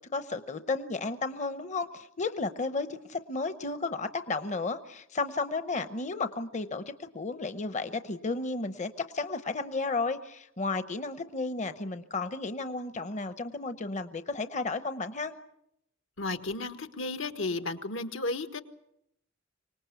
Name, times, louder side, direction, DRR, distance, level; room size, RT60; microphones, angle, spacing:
voice 1, 0.1-15.3, left 3 dB, 40° left, 10 dB, 0.8 m, -33 dB
voice 2, 16.2-18.6, left 2 dB, 80° left, 8 dB, 1.5 m, -33 dB
25.0 x 19.0 x 8.3 m, 0.81 s
head